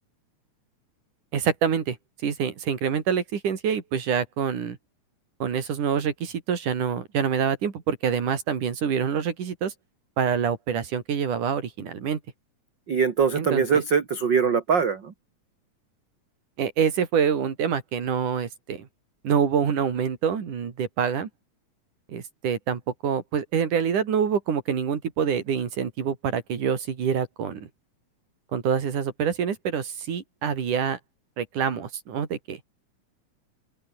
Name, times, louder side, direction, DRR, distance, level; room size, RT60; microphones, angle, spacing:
voice 1, 1.3-2.0 2.2-4.8 5.4-9.7 10.2-12.2 13.3-13.8 16.6-18.9 19.2-21.3 22.1-27.7 28.5-31.0 31.4-32.6, right 7 dB, 90° right, 4.5 m, -26 dB
voice 2, 12.9-15.1, right 6 dB, 40° right, 2.4 m, -22 dB
open air
omnidirectional pair, 3.5 m